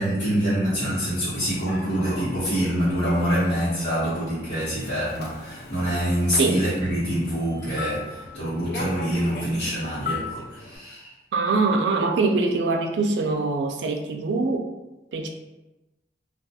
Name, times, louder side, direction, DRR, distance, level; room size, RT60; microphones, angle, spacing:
voice 1, 0.0-11.1, equal, 85° left, -14 dB, 1.0 m, -25 dB
Human voice / Subway metro underground, 1.3-10.8, left 3 dB, 55° left, 0.4 m, -39 dB
voice 2, 11.3-14.7 15.1-15.3, right 3 dB, 80° right, 3 dB, 0.3 m, -23 dB
2.7 x 2.3 x 2.2 m, 1.0 s
head